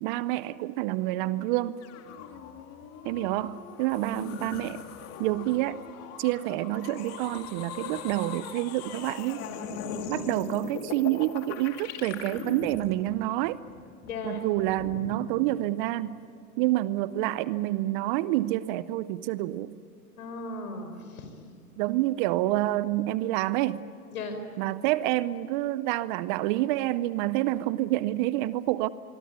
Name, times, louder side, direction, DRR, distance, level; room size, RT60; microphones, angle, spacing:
voice 1, 0.0-1.8 3.0-4.8 5.2-5.9 6.2-9.5 10.1-13.6 14.2-16.2 16.6-19.8 21.8-23.8 24.6-28.9, right 16 dB, 35° right, 0.6 m, -28 dB
sound 1, 1.8-15.6, left 6 dB, 35° left, 2.4 m, -40 dB
voice 2, 4.1-4.6 14.0-14.5 20.2-21.4 24.1-24.4, left 3 dB, 70° left, 5.6 m, -37 dB
25.0 x 23.0 x 9.4 m
hypercardioid pair, 120°, 46 cm